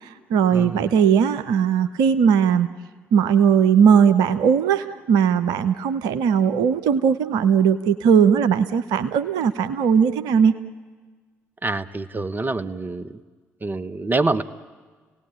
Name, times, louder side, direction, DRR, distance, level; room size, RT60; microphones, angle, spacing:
voice 1, 0.0-2.7 3.1-10.6, right 7 dB, 70° right, 11 dB, 0.8 m, -18 dB
voice 2, 0.5-0.9 11.6-13.2 13.6-14.4, right 3 dB, 25° right, 10 dB, 1.1 m, -26 dB
29.5 x 18.0 x 8.9 m, 1.5 s
figure-of-eight pair, 45°, 7 cm